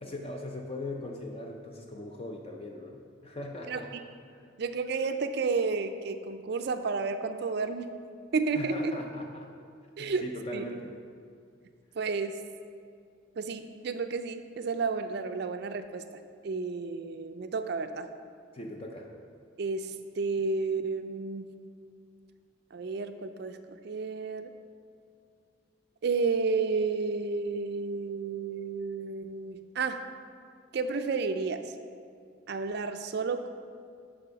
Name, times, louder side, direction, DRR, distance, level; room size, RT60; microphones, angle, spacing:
voice 1, 0.0-3.9 4.3-4.5 8.5-9.5 10.0-11.0 18.5-19.1, left 1 dB, 30° left, 1 dB, 0.5 m, -40 dB
voice 2, 4.6-8.1 8.3-8.9 10.0-10.3 10.5-10.6 12.0-12.3 13.4-16.0 16.4-18.1 19.6-21.5 22.7-23.6 23.8-24.5 26.0-30.2 30.7-31.6 32.5-33.5, right 4 dB, 50° right, 8 dB, 0.4 m, -31 dB
10.0 x 3.5 x 5.7 m, 2.3 s
head